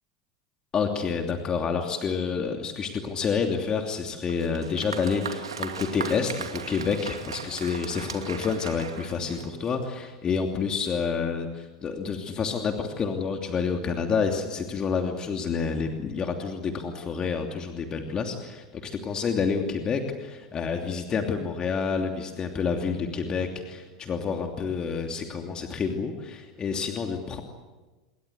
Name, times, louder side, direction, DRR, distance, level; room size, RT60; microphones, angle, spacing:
voice 1, 0.7-27.4, left 5 dB, 30° left, 3 dB, 2.9 m, -28 dB
Applause, 4.3-9.9, right 6 dB, 85° right, 2.6 m, -38 dB
28.5 x 22.5 x 8.2 m, 1.2 s
hypercardioid pair, 85°, 3 cm